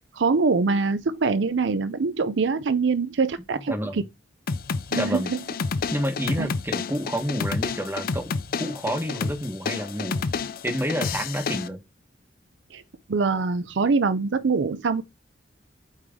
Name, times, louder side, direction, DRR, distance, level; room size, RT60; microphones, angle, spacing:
voice 1, 0.2-4.0 4.9-5.4 6.4-6.5 12.7-12.8 13.1-15.0, right 4 dB, 80° right, 0.5 m, -24 dB
voice 2, 3.7-4.1 4.9-5.3 5.9-10.3 10.6-11.8, equal, 10° right, 1.2 m, -29 dB
sound 1, 4.5-11.7, left 5 dB, 55° left, 0.5 m, -30 dB
8.8 x 3.2 x 3.6 m
head